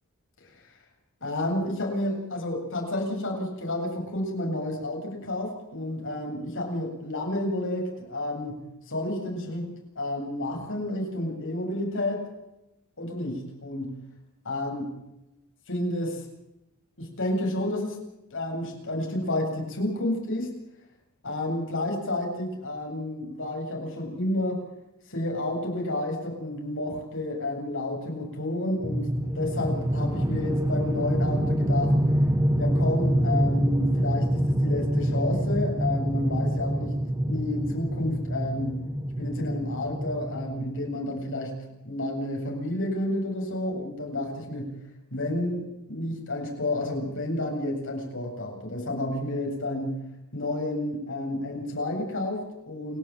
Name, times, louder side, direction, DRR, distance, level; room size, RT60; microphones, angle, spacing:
voice 1, 1.2-8.6 8.9-12.2 13.0-14.0 14.4-14.9 15.7-16.3 17.0-18.0 18.3-20.5 21.2-24.6 25.1-29.1 29.3-31.9 32.6-37.0 37.3-38.8 39.2-44.8 45.1-50.0 50.3-53.0, left 1 dB, 60° left, 1 dB, 7.8 m, -30 dB
sound 1, 28.8-41.1, equal, 15° right, 1.7 m, -26 dB
29.0 x 12.0 x 9.0 m, 0.91 s
head